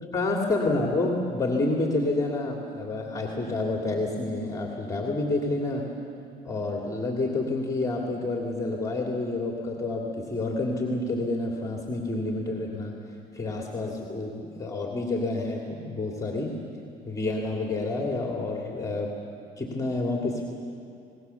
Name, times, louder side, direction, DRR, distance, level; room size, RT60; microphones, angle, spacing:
voice 1, 0.1-5.9 6.4-12.9 13.3-16.5 17.1-19.1 19.6-20.4, left 2 dB, 20° left, 0 dB, 2.6 m, -28 dB
27.0 x 20.0 x 7.1 m, 2.6 s
cardioid pair, 110°, 17 cm